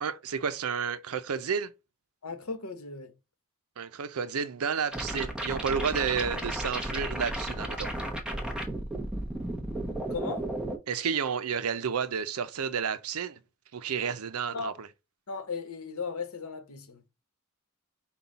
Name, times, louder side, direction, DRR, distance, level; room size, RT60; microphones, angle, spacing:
voice 1, 0.0-1.7 3.8-7.9 10.9-13.4 13.7-14.9, right 6 dB, 85° right, 0.6 m, -31 dB
voice 2, 2.2-3.1 10.1-10.5 14.5-14.7 15.3-17.1, left 4 dB, 85° left, 1.1 m, -36 dB
sound 1, 4.9-10.8, right 1 dB, 5° right, 0.8 m, -33 dB
5.4 x 2.3 x 4.0 m
head